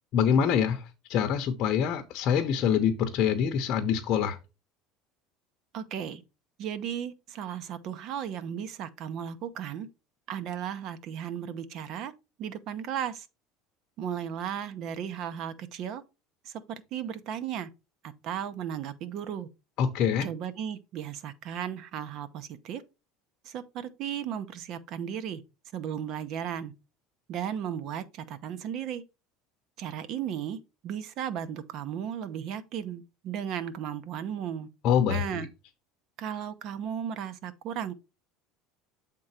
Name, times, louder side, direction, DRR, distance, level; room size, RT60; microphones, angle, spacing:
voice 1, 0.1-0.8 1.1-4.4 19.8-20.3 34.8-35.5, left 8 dB, 45° left, 0.8 m, -25 dB
voice 2, 5.7-6.2 6.6-9.9 10.3-12.1 12.4-13.3 14.0-16.0 16.4-16.5 16.9-17.7 18.2-19.5 20.2-22.8 23.4-25.4 25.7-26.7 27.3-29.0 29.8-34.7 35.1-35.5 36.2-38.0, right 9 dB, 50° right, 0.8 m, -35 dB
7.7 x 3.8 x 4.2 m
cardioid pair, 150°, 0 cm